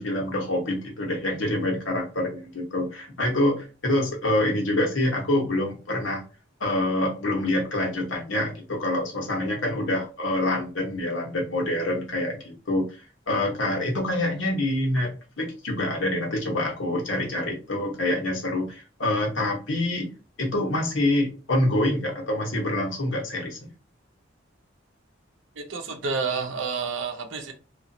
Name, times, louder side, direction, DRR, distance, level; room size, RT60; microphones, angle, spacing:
voice 1, 0.0-6.2 6.6-12.9 13.3-20.1 20.4-23.6, left 1 dB, 85° left, 0 dB, 1.0 m, -26 dB
voice 2, 25.6-27.5, right 5 dB, 80° right, 6 dB, 0.6 m, -29 dB
2.9 x 2.4 x 2.6 m, 0.35 s
head